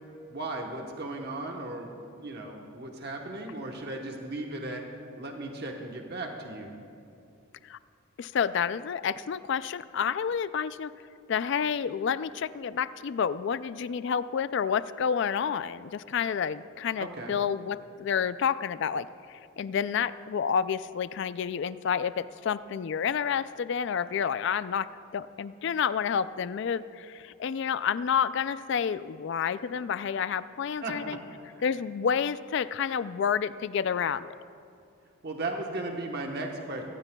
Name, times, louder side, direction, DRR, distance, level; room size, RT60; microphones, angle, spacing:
voice 1, 0.3-4.8 5.2-6.7 17.0-17.3 30.8-31.2 31.6-31.7 35.2-36.8, right 2 dB, 50° right, 1 dB, 1.1 m, -36 dB
voice 2, 8.2-10.9 11.3-24.9 25.1-31.2 31.6-34.3, left 7 dB, 55° left, 15 dB, 0.3 m, -29 dB
21.5 x 15.5 x 2.3 m, 2.5 s
head